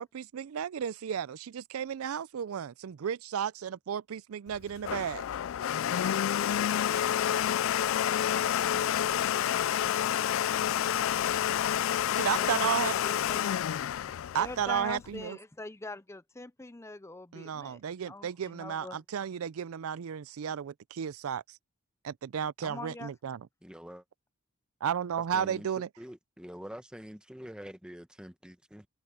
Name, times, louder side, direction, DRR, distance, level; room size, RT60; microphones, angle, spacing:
voice 1, 0.0-5.2 12.2-12.9 14.3-15.4 17.3-21.6 22.0-23.5 24.8-25.9, right 8 dB, 90° right, 0.4 m, -33 dB
Domestic sounds home sounds, 4.5-15.2, left 10 dB, 70° left, 0.3 m, -29 dB
voice 2, 12.3-13.6 14.3-19.0 22.6-23.1, left 2 dB, 15° left, 0.5 m, -43 dB
voice 3, 23.6-24.0 25.3-28.9, equal, 5° right, 1.0 m, -46 dB
head